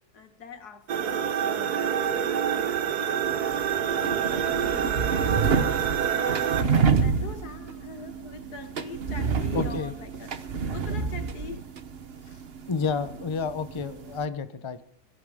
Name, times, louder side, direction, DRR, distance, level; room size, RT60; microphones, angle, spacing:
voice 1, 0.1-4.5 5.1-10.3 10.7-11.6 12.2-12.4, left 4 dB, 80° left, 8 dB, 2.2 m, -43 dB
sound 1, 0.9-6.6, right 8 dB, 80° right, 1.6 m, -27 dB
sound 2, 3.2-14.3, right 5 dB, 40° right, 1.2 m, -29 dB
voice 2, 9.5-9.9 12.7-14.8, left 5 dB, 25° left, 11 dB, 0.7 m, -30 dB
20.5 x 16.5 x 3.7 m, 0.67 s
omnidirectional pair, 1.7 m